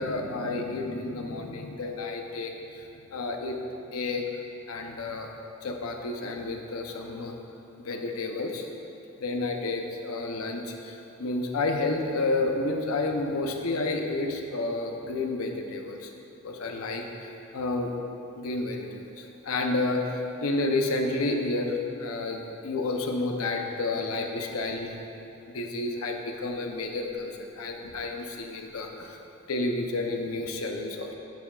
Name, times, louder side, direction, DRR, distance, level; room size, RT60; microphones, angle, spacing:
voice 1, 0.0-3.6 3.9-4.2 4.7-5.3 5.6-7.3 7.8-8.7 9.2-16.1 16.4-17.9 18.3-25.0 25.5-29.2 29.5-31.1, left 2 dB, 90° left, 3 dB, 0.7 m, -30 dB
9.1 x 7.1 x 2.4 m, 2.8 s
head